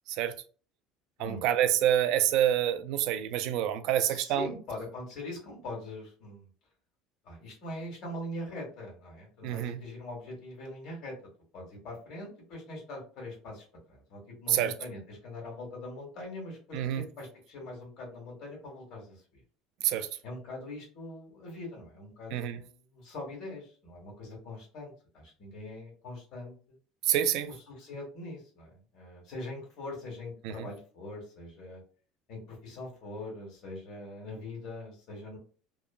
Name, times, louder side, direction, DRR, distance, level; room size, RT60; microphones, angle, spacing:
voice 1, 1.2-4.5 9.4-9.8 14.5-14.7 16.7-17.0 19.8-20.1 22.3-22.6 27.1-27.5 30.4-30.5, right 11 dB, 60° right, 0.3 m, -27 dB
voice 2, 4.0-6.5 7.2-11.2 11.5-19.2 20.2-26.8 27.4-31.8 32.3-35.4, left 2 dB, 45° left, 1.4 m, -42 dB
2.9 x 2.1 x 2.3 m
cardioid pair, 160°, 0 cm